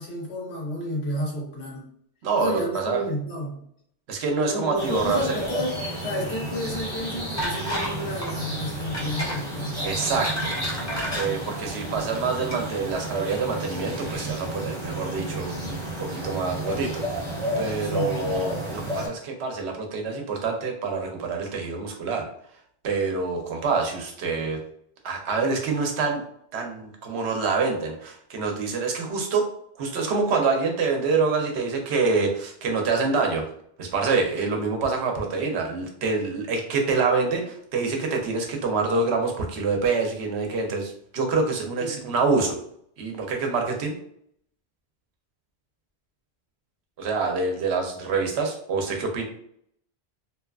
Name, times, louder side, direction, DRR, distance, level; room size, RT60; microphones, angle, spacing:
voice 1, 0.0-1.8 2.4-3.6 4.5-9.9 17.8-18.2 41.8-42.0, left 1 dB, 80° left, -3 dB, 1.2 m, -31 dB
voice 2, 2.2-3.0 4.1-5.4 9.8-10.5 11.2-15.6 16.0-17.0 17.6-22.3 22.8-24.6 25.0-26.2 26.5-29.5 29.8-33.4 33.8-42.6 43.0-43.9 47.0-49.2, right 4 dB, 85° right, 2 dB, 0.9 m, -26 dB
sound 1, 4.8-19.1, right 1 dB, 30° right, 0.8 m, -32 dB
sound 2, 7.4-8.0 8.2-8.4 8.9-9.4 9.9-11.3 12.0-12.2 12.5-12.6, equal, 25° left, 0.4 m, -31 dB
2.8 x 2.3 x 2.3 m, 0.67 s
omnidirectional pair, 1.1 m